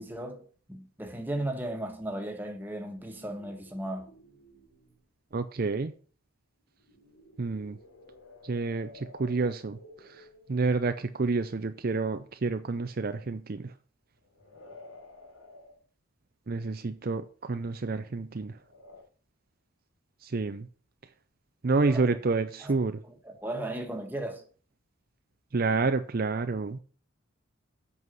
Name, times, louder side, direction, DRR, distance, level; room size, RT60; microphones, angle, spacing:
voice 1, 0.0-4.1 21.8-22.2 22.6-22.8 23.0-24.4, right 1 dB, 10° right, 1.5 m, -36 dB
sound 1, 2.8-5.0 6.7-10.9 14.2-15.8 18.5-19.0, left 2 dB, 75° left, 3.5 m, -53 dB
voice 2, 5.3-5.9 7.4-7.8 8.4-13.7 16.5-18.6 20.2-20.7 21.6-23.0 25.5-26.8, right 3 dB, 45° right, 0.5 m, -29 dB
8.2 x 5.5 x 7.6 m
head